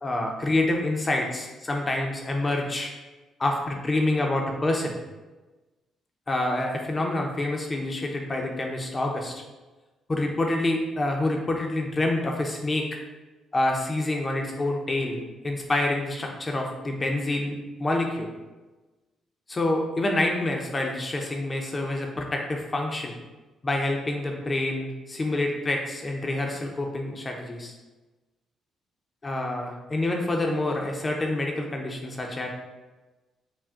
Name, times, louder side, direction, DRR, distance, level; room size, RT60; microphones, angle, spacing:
voice 1, 0.0-2.9 3.4-5.0 6.3-9.4 10.1-12.9 13.5-18.3 19.5-23.1 23.6-27.7 29.2-32.5, left 2 dB, 25° left, 1 dB, 0.5 m, -27 dB
5.8 x 2.1 x 2.4 m, 1.2 s
cardioid pair, 90°, 0 cm